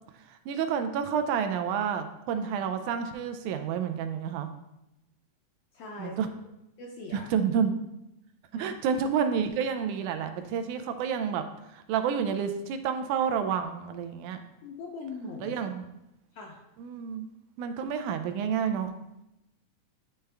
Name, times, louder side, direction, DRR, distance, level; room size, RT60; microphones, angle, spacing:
voice 1, 0.3-4.5 6.0-6.3 7.1-7.7 8.5-11.4 11.7-14.4 15.4-15.9 16.8-17.3 17.6-19.0, right 7 dB, 85° right, 8 dB, 2.0 m, -29 dB
voice 2, 5.7-6.2 6.8-7.3 8.5-8.8 14.6-15.6 16.3-16.6, left 3 dB, 75° left, 0 dB, 1.5 m, -41 dB
9.6 x 3.4 x 3.3 m, 0.88 s
omnidirectional pair, 3.5 m